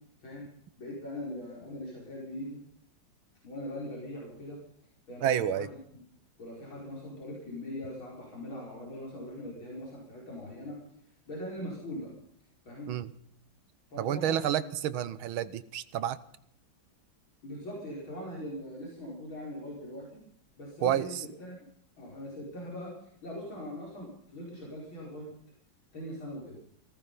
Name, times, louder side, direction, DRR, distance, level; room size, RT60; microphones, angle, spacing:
voice 1, 0.8-2.6 3.4-4.6 5.1-5.7 5.9-6.0 6.4-10.8 11.3-12.1 12.7-12.9 13.9-14.4 17.4-20.1 20.6-21.6 22.0-25.3 25.9-26.6, left 1 dB, 75° left, -3 dB, 5.9 m, -41 dB
voice 2, 5.2-5.7 12.9-13.1 14.0-16.2 20.8-21.2, right 10 dB, 90° right, 15 dB, 1.8 m, -29 dB
18.0 x 14.5 x 5.5 m, 0.65 s
omnidirectional pair, 2.2 m